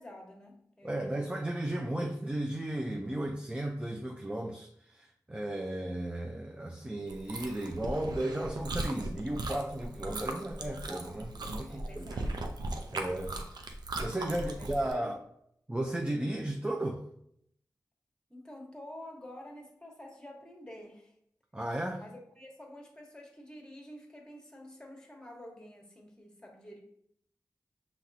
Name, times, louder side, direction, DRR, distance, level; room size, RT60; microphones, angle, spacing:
voice 1, 0.0-1.5 11.6-12.3 14.3-15.2 18.3-21.1 21.9-26.8, left 1 dB, 10° left, 1.2 m, -49 dB
voice 2, 0.8-12.0 12.9-13.4 14.0-15.2 15.7-17.0 21.5-22.0, right 1 dB, 15° right, 0.5 m, -34 dB
Chewing mastication, 7.1-14.9, right 2 dB, 80° right, 0.5 m, -38 dB
5.7 x 2.9 x 2.7 m
cardioid pair, 55°, 7 cm